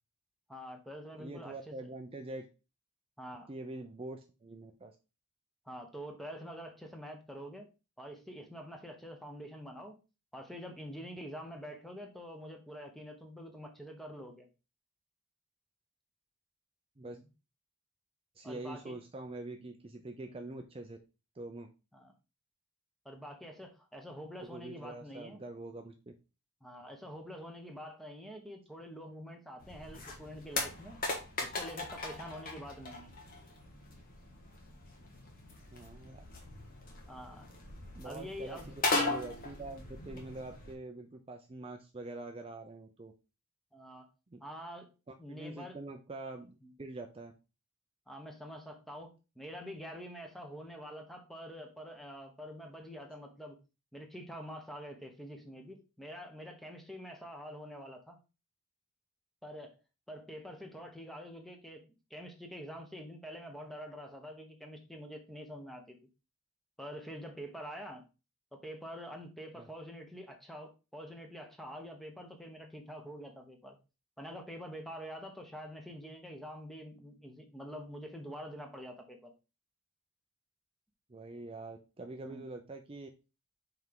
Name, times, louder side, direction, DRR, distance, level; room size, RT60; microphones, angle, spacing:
voice 1, 0.5-1.7 3.2-3.5 5.6-7.7 8.0-10.0 10.3-14.5 17.0-17.2 18.4-19.0 19.4-19.6 20.2-20.4 21.9-22.1 23.0-25.4 26.6-31.0 31.4-33.1 37.1-37.4 38.0-38.7 43.7-44.1 44.4-44.9 45.2-45.8 46.6-46.7 48.1-53.6 53.9-58.2 59.4-59.7 60.1-61.8 62.1-66.0 66.8-68.0 68.5-73.8 74.2-79.3 82.2-82.4, equal, ahead, 3 dB, 1.1 m, -46 dB
voice 2, 1.2-2.5 3.5-5.0 17.0-17.2 18.4-21.0 21.3-21.7 24.4-26.1 35.7-36.2 37.9-38.6 38.9-43.1 44.3-44.4 45.1-47.3 69.6-69.7 81.1-83.1, right 2 dB, 25° right, 4 dB, 0.6 m, -45 dB
sound 1, 29.6-40.7, left 2 dB, 45° left, 1.6 m, -39 dB
5.9 x 4.5 x 3.7 m, 0.30 s
head